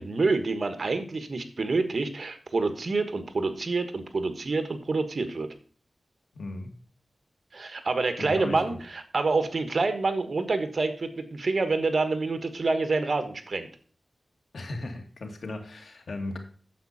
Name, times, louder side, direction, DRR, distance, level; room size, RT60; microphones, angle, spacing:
voice 1, 0.0-5.5 7.5-13.7, right 3 dB, 55° right, 9 dB, 1.4 m, -27 dB
voice 2, 6.3-6.8 8.2-8.8 14.5-16.4, left 2 dB, 80° left, 4 dB, 2.1 m, -36 dB
9.4 x 7.5 x 4.2 m, 0.43 s
wide cardioid pair, 95°, 0 cm